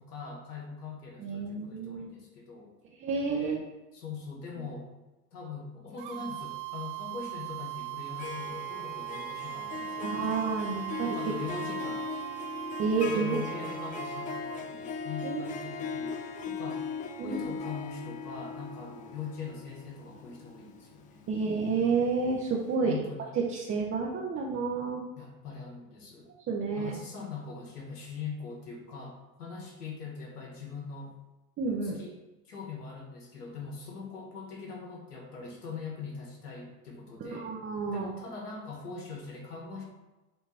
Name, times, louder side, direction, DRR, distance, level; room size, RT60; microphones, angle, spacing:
voice 1, 0.0-2.7 3.4-3.6 3.9-4.9 5.3-10.4 11.0-12.0 13.0-16.2 16.4-16.8 17.2-21.2 22.8-23.3 25.2-26.3 26.7-31.1 31.8-32.1 32.4-37.5 37.9-39.8, left 5 dB, 90° left, -1 dB, 1.7 m, -42 dB
voice 2, 1.2-2.1 3.0-3.6 10.0-11.1 12.8-13.4 15.2-15.4 16.0-16.1 17.2-17.4 21.3-22.9 23.4-25.0 26.5-26.9 31.6-32.0 37.2-38.1, right 4 dB, 30° right, -3 dB, 1.0 m, -30 dB
sound 1, 6.0-14.6, right 20 dB, 45° right, 0.6 m, -39 dB
Harp, 8.0-22.0, left 5 dB, 20° left, 0.3 m, -39 dB
7.7 x 2.9 x 4.2 m, 1.1 s
hypercardioid pair, 100°, 45 cm